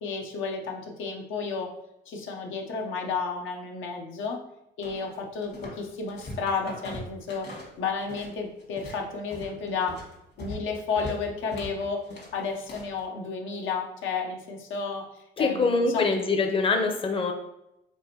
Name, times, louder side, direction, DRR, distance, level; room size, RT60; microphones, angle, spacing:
voice 1, 0.0-1.7 2.1-4.4 4.8-7.5 7.8-10.0 10.4-12.0 12.3-15.1 15.4-16.0, left 5 dB, 80° left, 1 dB, 0.8 m, -32 dB
sound 1, 4.8-5.8 6.1-8.3 8.6-13.0, left 1 dB, 55° left, 1.5 m, -41 dB
voice 2, 15.4-17.3, left 3 dB, 25° left, 5 dB, 0.6 m, -24 dB
4.6 x 3.3 x 2.8 m, 0.83 s
cardioid pair, 90°, 20 cm